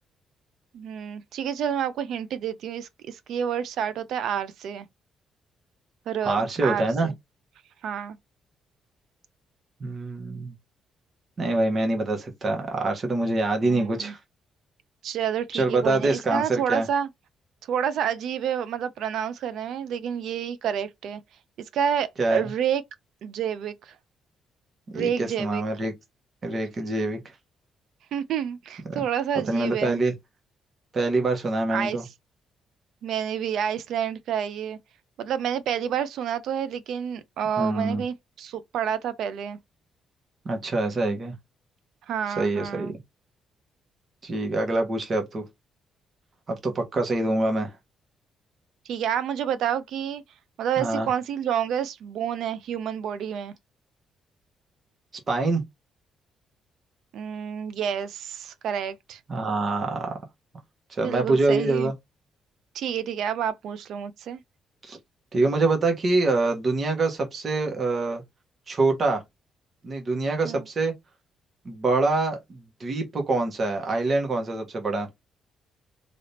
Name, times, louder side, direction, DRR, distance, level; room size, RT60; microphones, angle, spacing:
voice 1, 0.7-4.9 6.1-7.1 7.8-8.2 13.6-14.1 15.0-17.1 17.7-21.2 21.7-22.8 23.2-24.0 24.9-25.6 28.1-30.0 31.7-32.0 33.0-34.8 35.2-39.6 42.1-42.9 48.9-50.2 50.6-53.5 57.1-59.2 61.0-61.9 62.7-64.4 70.4-70.6, right 8 dB, 75° right, 0.6 m, -29 dB
voice 2, 6.2-7.1 9.8-10.5 11.4-14.2 15.5-16.9 22.2-22.4 24.9-25.9 26.4-27.2 28.9-29.0 29.5-30.1 30.9-32.0 37.6-38.0 40.4-41.3 42.4-42.9 44.2-45.4 46.5-47.8 50.8-51.1 55.3-55.6 59.3-60.2 60.9-61.9 64.8-65.0 65.3-68.2 68.7-69.2 69.8-70.9 71.6-75.1, right 2 dB, 40° right, 1.6 m, -25 dB
3.7 x 3.5 x 2.8 m
cardioid pair, 90°, 0 cm